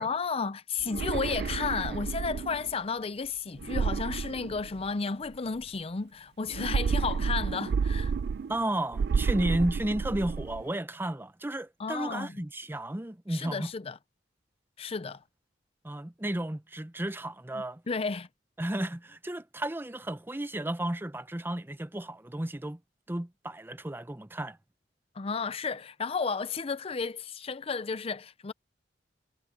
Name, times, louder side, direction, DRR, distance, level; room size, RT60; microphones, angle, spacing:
voice 1, 0.0-8.1 11.8-12.4 13.3-14.0 14.8-15.2 17.5-18.3 25.1-28.5, left 5 dB, 35° left, 0.5 m, -33 dB
sound 1, 0.8-2.7 3.6-5.1 6.5-8.6 8.9-10.6, right 5 dB, 60° right, 0.3 m, -30 dB
voice 2, 8.5-13.7 15.8-17.8 18.6-22.8 23.1-24.6, right 1 dB, 10° right, 0.7 m, -33 dB
head